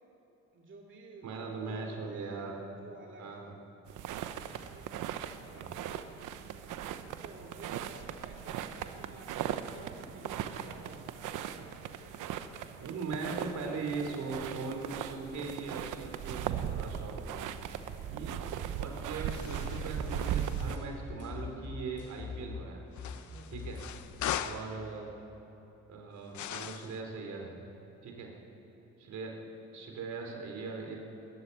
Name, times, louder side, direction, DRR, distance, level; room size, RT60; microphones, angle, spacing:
voice 1, 0.5-3.4 4.7-5.0 5.4-5.9 7.0-11.2 11.5-11.8 23.3-23.7, right 3 dB, 40° right, -1 dB, 2.4 m, -52 dB
voice 2, 1.2-2.6 3.2-3.6 5.5-5.8 12.8-17.5 18.1-22.8 23.5-23.8 24.3-25.1 25.9-27.6 28.0-28.3 29.0-31.0, right 4 dB, 70° right, 2 dB, 3.7 m, -40 dB
sound 1, 3.9-20.8, right 9 dB, 85° right, 1.0 m, -38 dB
sound 2, 19.3-20.8 22.9-24.7 26.3-27.0, left 11 dB, 70° left, 0.8 m, -40 dB
sound 3, 19.3-22.6 23.0-24.4, left 5 dB, 55° left, 5.1 m, -43 dB
20.0 x 13.5 x 9.8 m, 3.0 s
cardioid pair, 90°, 30 cm